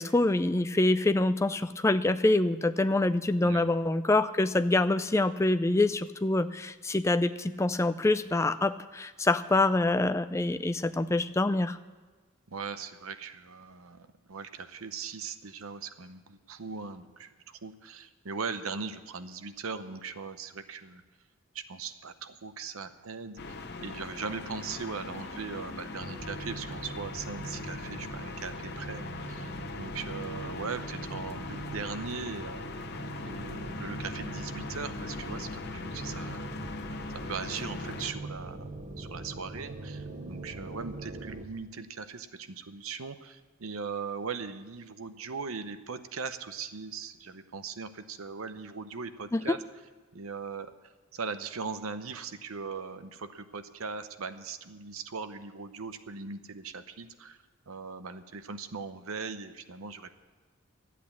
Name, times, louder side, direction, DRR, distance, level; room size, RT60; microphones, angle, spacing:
voice 1, 0.0-11.8 49.3-49.6, left 2 dB, 15° left, 11 dB, 0.3 m, -26 dB
voice 2, 3.4-3.7 12.5-21.0 21.5-32.6 33.2-36.5 37.2-38.7 39.0-49.6 50.1-50.7 51.1-57.4 57.7-60.1, right 5 dB, 80° right, 10 dB, 0.8 m, -39 dB
sound 1, 23.4-38.1, left 3 dB, 50° left, 0.9 m, -40 dB
sound 2, 26.0-41.4, right 2 dB, 35° right, 0.9 m, -42 dB
12.5 x 8.5 x 8.4 m, 1.4 s
head